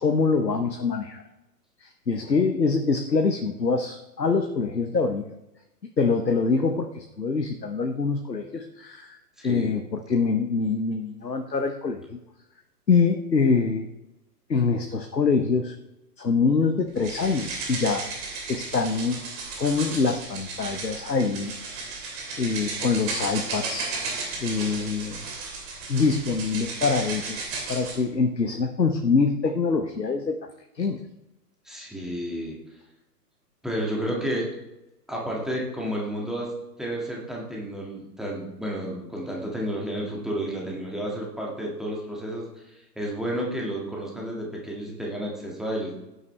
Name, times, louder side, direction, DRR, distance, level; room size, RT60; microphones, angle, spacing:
voice 1, 0.0-1.2 1.8-5.2 6.0-9.2 9.4-12.0 12.9-13.9 14.5-15.7 16.2-18.0 18.5-19.2 19.6-21.5 21.8-22.0 22.4-23.9 24.4-25.2 25.9-27.4 27.7-30.4 30.7-31.0, left 4 dB, 80° left, 5 dB, 1.2 m, -24 dB
voice 2, 9.4-9.7 31.7-32.6 33.6-34.5 35.1-36.5 36.8-46.1, equal, ahead, -3 dB, 2.0 m, -31 dB
sound 1, 17.0-28.0, right 4 dB, 25° right, 2.9 m, -34 dB
16.0 x 9.5 x 3.3 m, 0.96 s
figure-of-eight pair, 125°, 50 cm